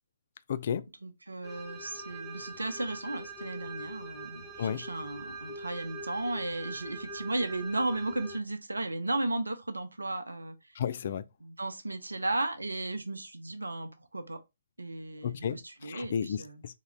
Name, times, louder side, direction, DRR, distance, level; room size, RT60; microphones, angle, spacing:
voice 1, 0.5-0.9 4.6-4.8 10.8-11.2 15.2-16.8, left 8 dB, 45° left, 0.3 m, -33 dB
voice 2, 1.0-10.5 11.4-14.4 14.8-16.6, right 2 dB, 80° right, 0.7 m, -35 dB
sound 1, 1.4-8.4, right 2 dB, 5° left, 0.6 m, -43 dB
3.8 x 2.4 x 3.2 m
figure-of-eight pair, 135°, 0 cm